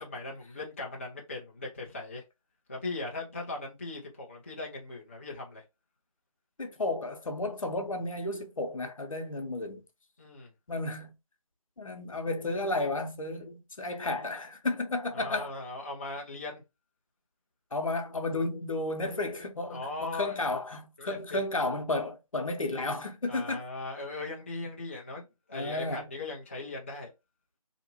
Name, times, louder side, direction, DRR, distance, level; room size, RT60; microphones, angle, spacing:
voice 1, 0.0-2.2 2.7-5.6 10.2-10.5 15.1-16.6 19.7-20.4 21.0-21.4 23.3-27.1, left 2 dB, 20° left, 0.4 m, -39 dB
voice 2, 6.6-9.8 10.7-11.1 11.8-15.5 17.7-23.6 25.5-26.1, left 2 dB, 70° left, 0.8 m, -32 dB
2.8 x 2.5 x 2.8 m
figure-of-eight pair, 160°, 18 cm